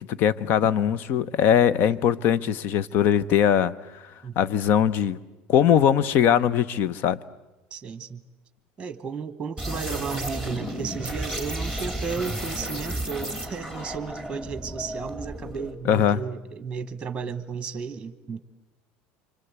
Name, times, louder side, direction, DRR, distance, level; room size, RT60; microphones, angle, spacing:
voice 1, 0.1-4.0 4.4-5.2 5.5-7.2 15.8-16.2, left 9 dB, 50° left, 0.8 m, -21 dB
voice 2, 7.7-8.2 8.8-18.4, right 6 dB, 15° right, 1.2 m, -34 dB
sound 1, 9.6-15.7, right 1 dB, 10° left, 2.9 m, -33 dB
28.5 x 25.5 x 8.2 m
cardioid pair, 145°, 4 cm